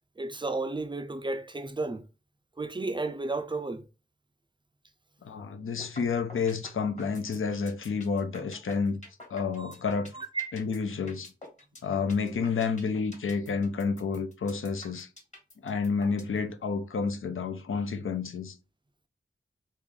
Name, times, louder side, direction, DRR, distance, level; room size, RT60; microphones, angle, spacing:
voice 1, 0.2-2.0 2.6-3.8 9.6-9.8 10.1-10.5, right 3 dB, 25° right, 0.4 m, -33 dB
voice 2, 5.2-9.0 9.3-10.1 10.5-11.3 11.8-15.1 15.6-18.6, left 5 dB, 85° left, 0.5 m, -30 dB
sound 1, 5.8-6.0 6.3-16.4, left 1 dB, 35° left, 1.4 m, -47 dB
3.2 x 2.5 x 3.7 m
wide cardioid pair, 80°, 21 cm